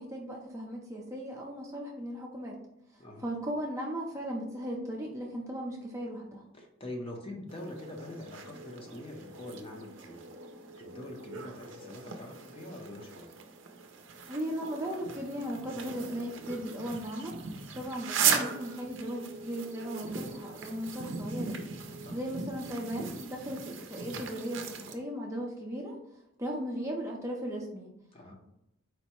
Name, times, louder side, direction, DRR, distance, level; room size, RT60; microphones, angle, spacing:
voice 1, 0.0-2.6 3.2-6.4 14.3-17.4 17.7-21.6 22.1-26.0 26.4-27.9, equal, 15° right, -1 dB, 0.5 m, -37 dB
voice 2, 6.5-10.2 10.8-13.3 22.0-22.2 28.1-28.3, left 1 dB, 25° left, 1 dB, 0.6 m, -44 dB
sound 1, 7.5-24.9, right 6 dB, 65° right, 0.5 m, -38 dB
4.5 x 2.0 x 4.2 m, 0.84 s
head